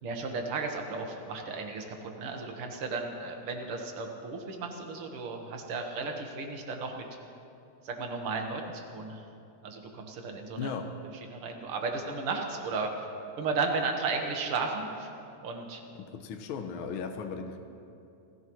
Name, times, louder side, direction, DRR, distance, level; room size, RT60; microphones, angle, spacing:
voice 1, 0.0-1.8 2.2-7.0 7.8-9.2 9.6-10.7 11.3-12.9 13.4-15.1 15.4-15.8, right 4 dB, 50° right, 3 dB, 2.1 m, -34 dB
voice 2, 10.6-10.9 15.9-17.6, left 5 dB, 75° left, 5 dB, 1.2 m, -37 dB
29.0 x 15.5 x 3.2 m, 2.7 s
omnidirectional pair, 3.5 m